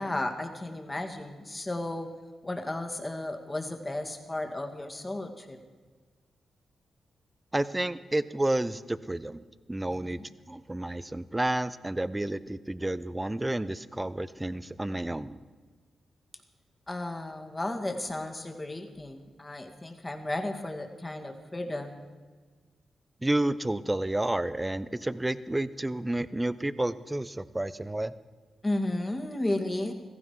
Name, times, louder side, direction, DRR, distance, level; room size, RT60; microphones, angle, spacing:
voice 1, 0.0-2.1 2.4-5.6 9.9-10.2 16.9-22.1 28.6-29.9, left 1 dB, 25° left, 4 dB, 2.1 m, -34 dB
voice 2, 7.5-9.4 9.7-10.2 10.5-15.4 23.2-28.1, right 1 dB, 15° right, 15 dB, 0.7 m, -30 dB
15.5 x 15.0 x 4.7 m, 1.5 s
hypercardioid pair, 40°, 0 cm